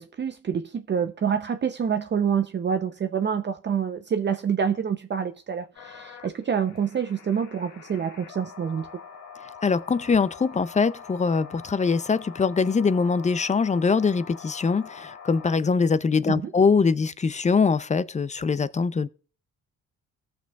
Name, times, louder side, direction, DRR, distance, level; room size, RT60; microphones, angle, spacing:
voice 1, 0.0-8.9 16.3-16.5, right 7 dB, 35° right, 0.7 m, -27 dB
sound 1, 5.7-15.8, left 6 dB, 80° left, 1.9 m, -45 dB
voice 2, 9.6-19.1, left 5 dB, 25° left, 0.5 m, -23 dB
18.0 x 6.3 x 2.3 m
cardioid pair, 90°, 30 cm